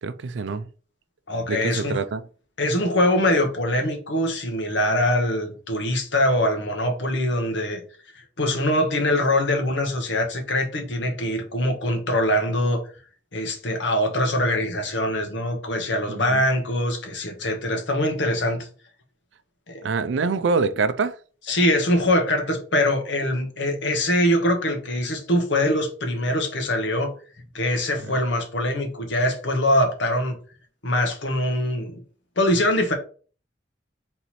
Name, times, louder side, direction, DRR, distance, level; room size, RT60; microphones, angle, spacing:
voice 1, 0.0-0.7 1.5-2.2 16.1-16.4 19.8-21.2 28.1-28.2, right 4 dB, 75° right, 0.4 m, -25 dB
voice 2, 1.3-2.0 2.6-7.8 8.4-12.8 13.3-18.7 19.7-19.8 21.5-27.1 27.5-30.4 30.8-32.0 32.4-32.9, left 1 dB, 75° left, 1.2 m, -23 dB
3.9 x 3.1 x 4.1 m
head